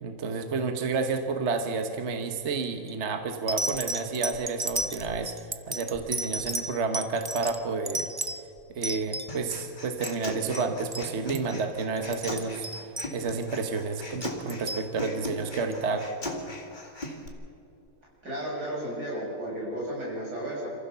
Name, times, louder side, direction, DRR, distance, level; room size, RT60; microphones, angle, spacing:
voice 1, 0.0-8.1 8.7-16.1, right 4 dB, 50° right, 6 dB, 1.4 m, -30 dB
sound 1, 2.6-2.9 3.5-9.6 9.9-10.3 10.5-10.7 10.9-11.1 11.3-11.6 12.0-13.6 14.2-14.9 15.7-15.8, right 2 dB, 25° right, 0.6 m, -33 dB
Human voice, 9.3-17.3, left 1 dB, 30° left, 2.3 m, -39 dB
voice 2, 18.2-20.7, right 1 dB, 85° right, -4 dB, 7.8 m, -33 dB
27.5 x 15.5 x 6.8 m, 2.6 s
omnidirectional pair, 1.7 m